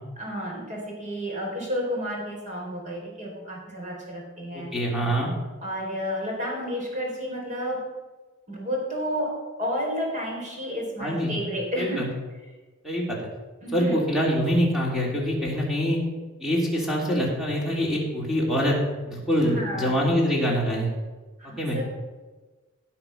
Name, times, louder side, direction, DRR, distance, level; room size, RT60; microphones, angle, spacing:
voice 1, 0.2-4.7 5.6-7.9 8.5-12.1 13.6-14.0 19.4-20.0 21.4-21.8, equal, 40° right, -1 dB, 4.3 m, -31 dB
voice 2, 4.5-5.3 11.0-11.4 11.8-12.1 12.8-13.2 13.7-16.0 16.4-18.8 19.0-20.9 21.6-21.8, equal, ahead, -3 dB, 3.4 m, -24 dB
17.5 x 6.1 x 5.8 m, 1.3 s
head